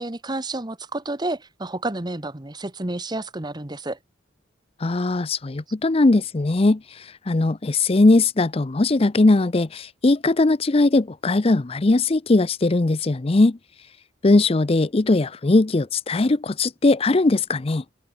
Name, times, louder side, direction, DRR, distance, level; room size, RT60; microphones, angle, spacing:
voice 1, 0.0-4.0, right 2 dB, 20° right, 1.2 m, -30 dB
voice 2, 4.8-13.6 14.2-17.8, left 2 dB, 30° left, 0.5 m, -19 dB
head